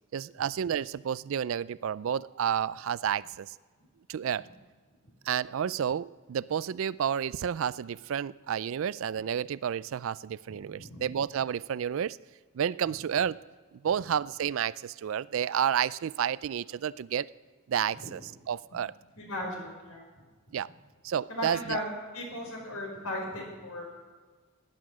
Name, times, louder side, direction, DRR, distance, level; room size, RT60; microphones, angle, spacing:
voice 1, 0.1-3.6 4.1-4.5 5.2-12.2 12.5-13.4 13.8-17.3 17.7-18.2 18.5-18.9 20.5-20.7 21.0-21.8, right 8 dB, 65° right, 19 dB, 0.3 m, -30 dB
voice 2, 10.5-11.1 18.0-18.1 19.1-20.0 21.3-21.8 22.1-23.9, left 1 dB, 90° left, 1 dB, 5.0 m, -37 dB
18.0 x 10.5 x 6.1 m, 1.5 s
head